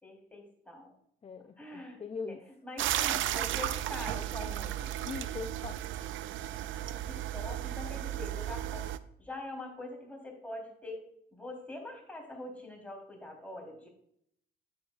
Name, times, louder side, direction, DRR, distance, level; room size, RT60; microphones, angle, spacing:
voice 1, 0.0-0.9 1.6-2.0 2.3-2.4 2.6-5.0 6.7-8.9 9.2-11.0 11.3-13.9, left 1 dB, 5° left, -1 dB, 3.7 m, -44 dB
voice 2, 1.2-2.4 5.0-5.9, left 5 dB, 30° left, 9 dB, 0.5 m, -41 dB
sound 1, 2.8-9.0, right 12 dB, 75° right, 0.5 m, -34 dB
10.5 x 7.9 x 2.5 m, 0.71 s
cardioid pair, 90°, 20 cm